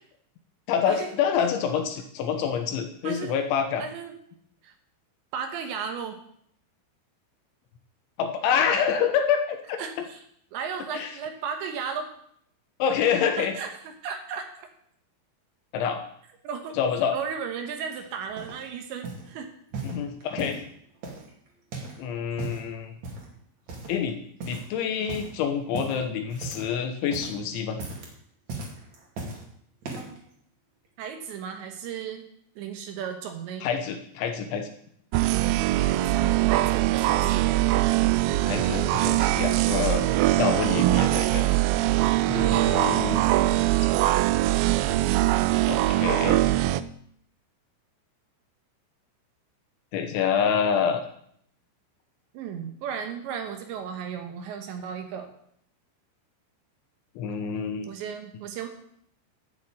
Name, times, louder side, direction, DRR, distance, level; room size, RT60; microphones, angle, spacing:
voice 1, 0.7-3.8 8.2-9.8 10.9-11.1 12.8-13.6 15.7-16.0 16.8-17.2 19.8-20.6 22.0-23.0 23.9-27.8 33.6-34.7 38.5-41.5 42.3-43.2 45.7-46.4 49.9-51.0 57.2-57.9, left 7 dB, 75° left, 6 dB, 3.2 m, -27 dB
voice 2, 3.8-4.1 4.6-4.7 5.3-6.2 9.8-10.2 10.5-12.1 13.4-14.7 16.4-16.8 17.1-19.5 30.0-30.2 31.0-32.3 32.6-33.7 35.8-37.6 42.3-42.6 52.3-55.3 57.9-58.7, right 7 dB, 70° right, 5 dB, 3.2 m, -35 dB
sound 1, 17.9-18.6 19.0-19.3 19.7-20.7 21.0-22.0 22.3-22.7 23.0-23.3 23.7-24.1 24.4-24.7 25.0-25.3 25.7-26.8 27.0-27.4 27.7-28.1 28.5-29.4 29.8-30.2 30.8-30.9, right 3 dB, 45° right, 2.9 m, -37 dB
sound 2, 35.1-46.8, right 16 dB, 90° right, 2.5 m, -22 dB
12.0 x 7.0 x 8.8 m, 0.67 s
omnidirectional pair, 5.8 m